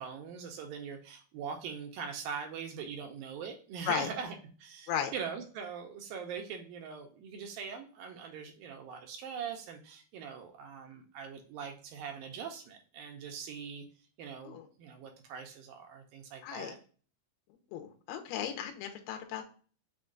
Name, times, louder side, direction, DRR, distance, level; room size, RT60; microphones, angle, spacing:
voice 1, 0.0-13.9 14.2-16.8, right 6 dB, 80° right, 4 dB, 2.1 m, -42 dB
voice 2, 16.4-16.8 17.7-19.4, left 9 dB, 85° left, 4 dB, 2.5 m, -35 dB
6.1 x 2.3 x 3.7 m, 0.41 s
omnidirectional pair, 4.5 m